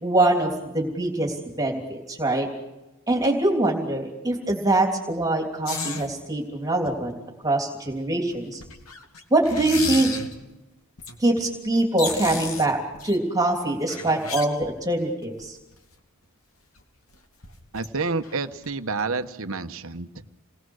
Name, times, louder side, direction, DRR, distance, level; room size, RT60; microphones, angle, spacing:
voice 1, 0.0-2.5 3.1-7.2 7.4-8.6 9.3-10.1 11.2-12.8 13.0-15.6, right 2 dB, 15° right, 1 dB, 3.2 m, -23 dB
sound 1, 5.7-6.1 6.8-6.9 7.9-8.0 8.3-10.4 11.0-11.2 11.5-11.6 11.8-13.2 13.7-15.0 15.4-15.5 15.7-15.8 16.8-16.9 17.1-17.2 17.4-17.9 18.2-18.7 19.0-19.1, left 4 dB, 75° left, 2.7 m, -33 dB
voice 2, 17.7-20.1, right 4 dB, 65° right, 9 dB, 1.1 m, -29 dB
29.0 x 20.0 x 6.4 m, 1.0 s
head